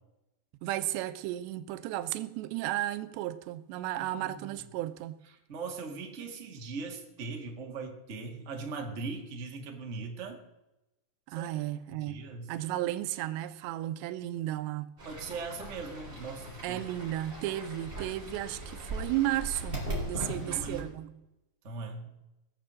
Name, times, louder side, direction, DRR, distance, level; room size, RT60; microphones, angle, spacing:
voice 1, 0.6-5.2 11.3-12.2 12.5-14.9 16.6-21.2, right 14 dB, 90° right, 2.9 m, -34 dB
voice 2, 4.0-4.6 5.5-10.4 11.3-11.5 12.0-12.5 15.0-16.8 20.1-20.9 21.6-22.1, right 4 dB, 40° right, 1.0 m, -40 dB
Fowl / Bird, 15.0-20.8, right 1 dB, 10° right, 4.3 m, -39 dB
18.5 x 7.4 x 7.5 m
omnidirectional pair, 4.8 m